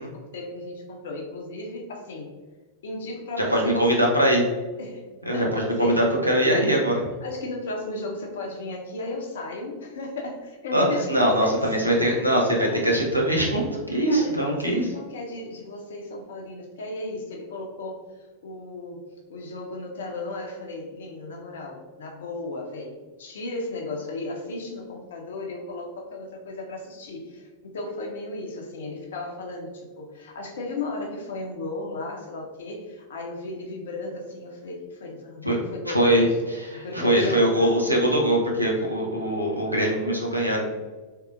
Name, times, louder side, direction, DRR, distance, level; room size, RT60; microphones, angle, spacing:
voice 1, 0.0-2.3 2.8-4.0 4.8-6.1 6.5-6.8 7.2-11.8 12.1-12.2 12.6-12.8 14.1-19.0 19.3-36.4 36.8-37.8, left 2 dB, 60° left, 1 dB, 0.7 m, -35 dB
voice 2, 3.5-4.4 5.3-6.9 10.7-12.6 12.8-14.9 35.4-35.6 35.9-40.6, right 1 dB, 90° right, -2 dB, 0.7 m, -22 dB
3.7 x 2.8 x 2.4 m, 1.3 s
figure-of-eight pair, 90°, 0 cm